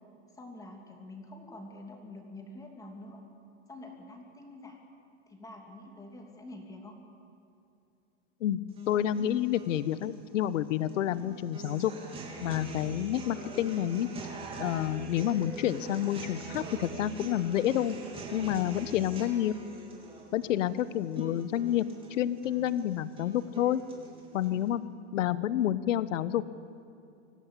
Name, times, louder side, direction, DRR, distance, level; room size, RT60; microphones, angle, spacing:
voice 1, 0.3-3.2 3.7-4.8 5.3-6.9 10.9-11.0 20.5-20.8 24.5-24.7, left 2 dB, 10° left, 2 dB, 2.8 m, -47 dB
voice 2, 8.4-11.9 12.4-14.1 14.6-18.0 18.3-19.5 20.3-21.8 22.1-23.8 24.3-24.8 25.1-26.4, left 12 dB, 85° left, 16 dB, 1.1 m, -29 dB
sound 1, 8.7-24.7, right 4 dB, 15° right, 3.1 m, -44 dB
25.0 x 17.5 x 8.5 m, 2.7 s
supercardioid pair, 160°, 37 cm